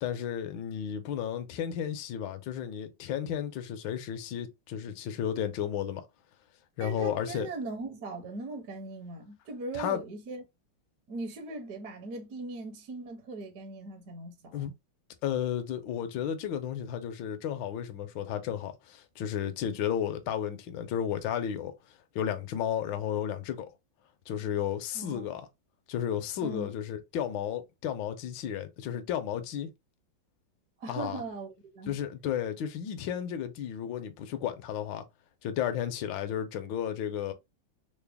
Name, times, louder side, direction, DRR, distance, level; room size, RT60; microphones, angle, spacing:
voice 1, 0.0-6.0 6.8-7.5 9.7-10.0 14.5-14.7 15.2-21.7 22.1-23.7 24.3-25.4 25.9-29.7 30.9-31.2 31.9-35.0 35.4-37.3, left 9 dB, 75° left, 1.3 m, -33 dB
voice 2, 6.8-10.4 11.1-14.7 24.9-25.3 26.4-26.7 30.8-32.0, right 3 dB, 60° right, 1.0 m, -39 dB
3.9 x 2.0 x 3.4 m
omnidirectional pair, 2.2 m